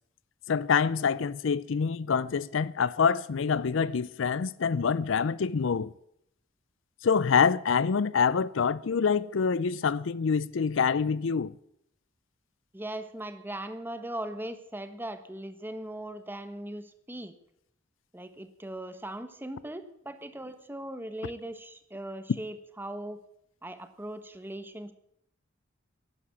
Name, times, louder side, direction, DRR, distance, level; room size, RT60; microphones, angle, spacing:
voice 1, 0.5-5.9 7.0-11.5, left 6 dB, 65° left, 0.5 m, -26 dB
voice 2, 12.7-17.3 18.1-23.2 23.6-24.9, right 1 dB, 10° right, 1.1 m, -39 dB
11.5 x 11.0 x 8.3 m
head